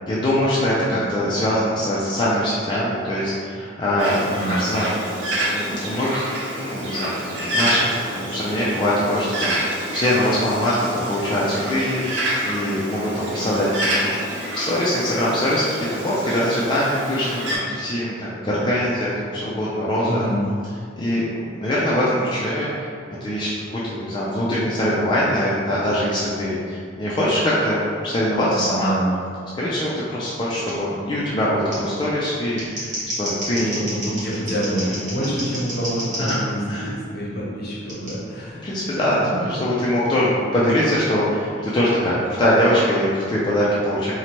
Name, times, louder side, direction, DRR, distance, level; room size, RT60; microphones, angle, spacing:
voice 1, 0.1-4.2 4.5-4.9 5.5-6.3 6.6-12.0 12.5-20.2 20.9-22.9 23.2-28.9 29.6-32.9 33.2-33.8 36.2-36.3 36.7-36.9 37.3-37.5 38.6-44.1, equal, 25° left, -8 dB, 0.3 m, -22 dB
Bird, 4.0-17.6, right 1 dB, 70° right, 0.6 m, -28 dB
voice 2, 4.3-4.7 20.1-20.5 28.5-29.1 33.7-38.6 39.2-39.4, right 1 dB, 55° left, -6 dB, 0.7 m, -26 dB
Scissors, 30.7-30.8 31.7-31.8 32.4-36.4 37.9-38.1, right 1 dB, 45° right, 0.9 m, -30 dB
2.7 x 2.1 x 2.9 m, 2.2 s
head